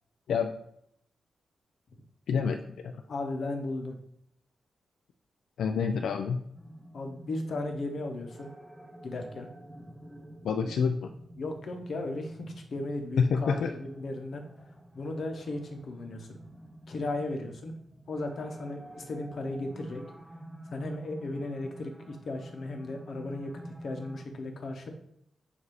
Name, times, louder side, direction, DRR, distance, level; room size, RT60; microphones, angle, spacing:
voice 1, 2.3-2.9 5.6-6.4 10.4-11.1 13.2-13.7, left 6 dB, 80° left, 6 dB, 0.4 m, -27 dB
voice 2, 3.1-4.0 6.9-8.5 9.0-9.5 10.7-10.8 11.4-14.4 14.9-16.4 16.9-17.7 18.1-20.0 20.7-24.9, left 2 dB, 45° left, 4 dB, 0.9 m, -36 dB
sound 1, 6.5-24.2, right 1 dB, 5° right, 0.4 m, -49 dB
7.4 x 2.7 x 4.8 m, 0.71 s
wide cardioid pair, 180°, 0 cm